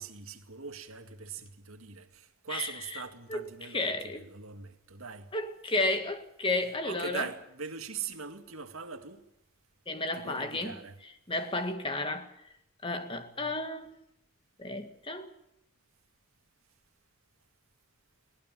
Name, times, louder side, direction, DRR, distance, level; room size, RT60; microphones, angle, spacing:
voice 1, 0.0-5.3 6.8-9.2 10.1-11.0, right 6 dB, 75° right, 2.1 m, -41 dB
voice 2, 2.5-3.0 3.3-3.4 3.7-4.2 5.3-7.3 9.9-10.8 11.3-12.3 12.8-13.9 14.6-15.3, left 2 dB, 25° left, 1.9 m, -32 dB
22.0 x 18.5 x 7.6 m
head